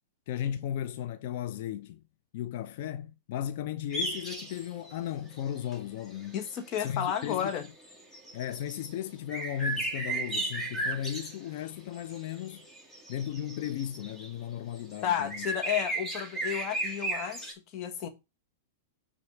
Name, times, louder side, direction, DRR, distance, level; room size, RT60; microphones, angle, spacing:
voice 1, 0.3-2.0 2.3-6.4 6.8-7.7 8.3-12.6 13.1-15.5, left 10 dB, 60° left, 0.6 m, -35 dB
sound 1, 3.9-4.9 5.3-5.8 6.4-6.5 6.7-8.9 9.3-11.7 12.0-14.3 14.7-17.5, right 2 dB, 10° left, 2.1 m, -35 dB
voice 2, 6.3-7.6 15.0-18.1, left 9 dB, 40° left, 1.6 m, -32 dB
6.5 x 4.1 x 5.9 m
hypercardioid pair, 120°, 0 cm